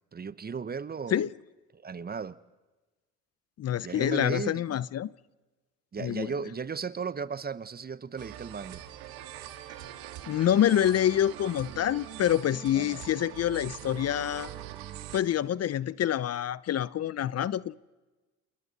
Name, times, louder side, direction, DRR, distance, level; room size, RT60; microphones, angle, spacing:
voice 1, 0.1-1.2 1.7-2.4 3.8-4.8 5.9-8.8 12.8-13.0, right 5 dB, 25° right, 0.9 m, -36 dB
voice 2, 3.6-5.1 6.0-6.3 10.3-14.5 15.1-17.7, left 11 dB, 45° left, 0.6 m, -27 dB
sound 1, 8.2-15.2, right 12 dB, 85° right, 1.8 m, -43 dB
29.0 x 28.0 x 4.1 m
supercardioid pair, 75°, 35 cm